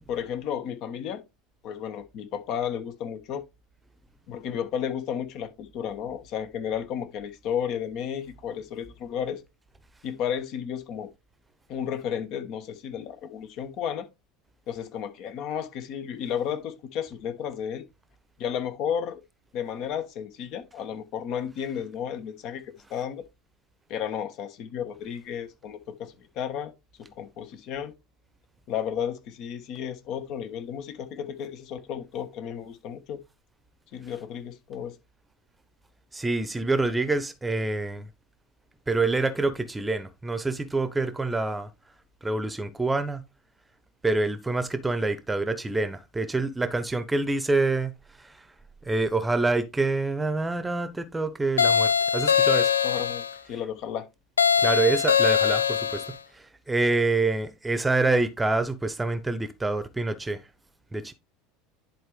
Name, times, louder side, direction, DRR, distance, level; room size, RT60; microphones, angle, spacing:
voice 1, 0.1-1.2 1.6-3.4 4.3-9.4 10.0-11.1 11.7-14.1 14.7-17.8 18.4-19.2 19.5-23.2 23.9-26.7 27.2-27.9 28.7-33.2 33.9-34.9 52.8-54.1, left 8 dB, 50° left, 1.2 m, -33 dB
voice 2, 36.1-38.1 38.9-41.7 42.2-43.2 44.0-47.9 48.2-48.4 48.8-52.8 54.6-56.0 56.3-60.4 60.9-61.1, right 3 dB, 10° right, 0.9 m, -26 dB
sound 1, 51.6-53.3 54.4-56.1, left 7 dB, 80° left, 0.4 m, -22 dB
11.0 x 4.3 x 3.2 m
figure-of-eight pair, 75°, 0 cm